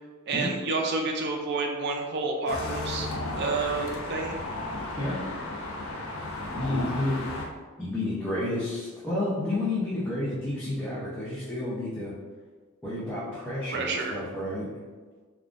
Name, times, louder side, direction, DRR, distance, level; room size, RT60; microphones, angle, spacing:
voice 1, 0.3-3.1 3.4-4.3 13.7-14.2, right 3 dB, 55° right, 2 dB, 0.4 m, -29 dB
sound 1, 2.5-7.5, left 2 dB, 75° left, 0.5 m, -34 dB
voice 2, 6.5-7.2 7.8-12.1 12.8-14.7, left 1 dB, 10° left, -10 dB, 0.5 m, -30 dB
3.5 x 2.3 x 2.4 m, 1.4 s
head